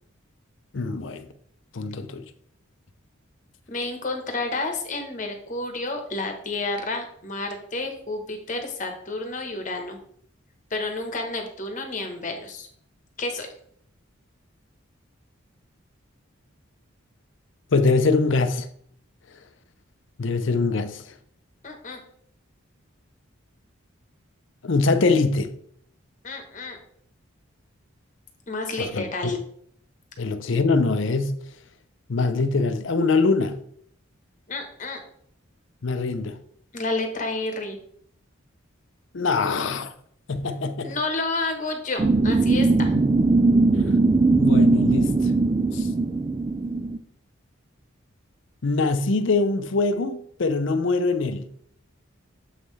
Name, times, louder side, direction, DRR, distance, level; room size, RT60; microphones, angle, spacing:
voice 1, 0.7-1.3 1.7-2.3 17.7-18.7 20.2-21.0 24.6-25.5 28.8-29.4 30.2-31.4 32.1-33.6 35.8-36.4 39.1-39.9 40.3-40.9 42.9-43.0 44.3-45.3 45.7-45.9 48.6-51.5, left 3 dB, 65° left, 0.6 m, -23 dB
voice 2, 3.7-10.0 10.7-12.7 13.2-13.5 21.6-22.0 26.2-26.8 28.5-29.4 34.5-35.0 36.7-37.8 40.8-42.9, left 2 dB, 35° left, 1.1 m, -30 dB
sound 1, 42.0-47.0, right 3 dB, 25° right, 0.3 m, -20 dB
7.3 x 5.5 x 3.2 m
head